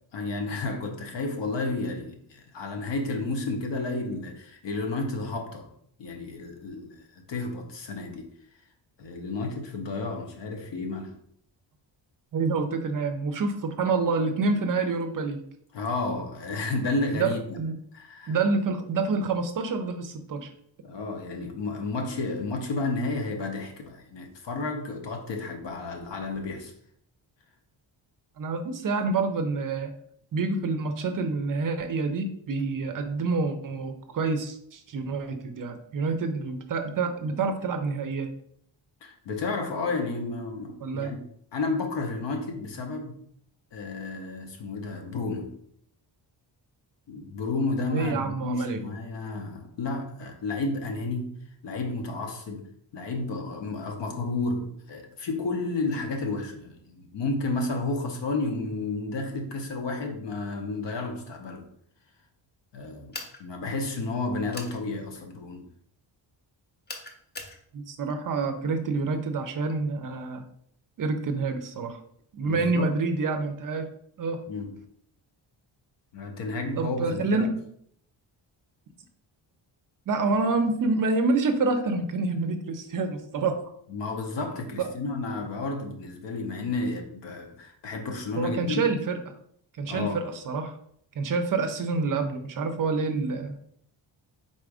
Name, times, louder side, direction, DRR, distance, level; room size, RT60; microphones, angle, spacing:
voice 1, 0.1-5.7 6.0-8.3 9.0-11.1 15.7-17.6 17.9-18.4 20.8-26.7 39.0-41.2 41.5-43.2 43.7-45.5 47.1-51.4 51.6-61.7 62.7-65.6 72.4-72.9 74.5-74.8 76.1-77.5 83.9-88.9 89.9-90.2, left 3 dB, 70° left, 0.9 m, -32 dB
voice 2, 12.3-15.4 17.1-17.3 17.6-17.7 18.3-20.5 28.4-29.9 30.3-38.3 40.8-41.1 47.9-48.8 67.7-70.4 71.0-72.0 72.3-73.9 74.2-74.4 76.8-77.5 80.1-83.5 84.8-84.9 88.4-89.2 89.8-90.8 91.2-93.6, right 4 dB, 45° right, 0.5 m, -27 dB
sound 1, 63.1-63.4 64.5-64.8 66.9-67.6, left 2 dB, 25° left, 0.5 m, -39 dB
4.1 x 2.5 x 4.7 m
wide cardioid pair, 180°, 45 cm